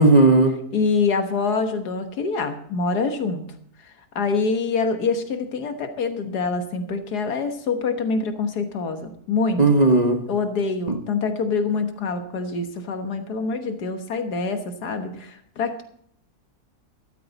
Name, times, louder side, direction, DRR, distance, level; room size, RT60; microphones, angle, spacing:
voice 1, 0.0-0.6 9.6-10.2, right 2 dB, 30° right, 4 dB, 1.1 m, -15 dB
voice 2, 0.7-3.5 3.8-9.6 10.3-15.8, left 4 dB, 80° left, 7 dB, 1.8 m, -25 dB
13.0 x 12.5 x 4.1 m, 0.67 s
omnidirectional pair, 1.7 m